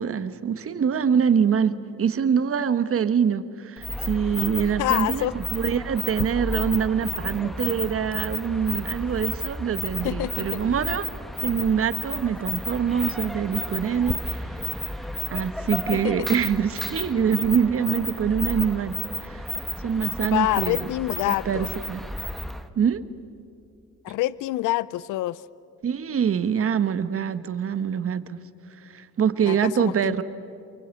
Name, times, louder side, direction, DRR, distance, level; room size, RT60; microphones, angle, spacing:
voice 1, 0.0-11.1 11.4-14.9 15.3-19.0 19.2-19.5 19.8-20.8 21.3-22.0 22.8-23.0 25.8-28.4 28.8-30.2, right 7 dB, 50° right, 13 dB, 1.2 m, -24 dB
sound 1, 3.8-22.7, equal, ahead, 1.3 m, -32 dB
voice 2, 4.8-5.3 10.0-10.6 15.9-16.3 20.3-21.7 24.0-25.4 29.5-30.2, left 16 dB, 85° left, 20 dB, 0.5 m, -26 dB
sound 2, 5.7-14.1, left 5 dB, 30° left, 1.1 m, -43 dB
28.5 x 23.0 x 8.3 m, 2.5 s
cardioid pair, 90°, 30 cm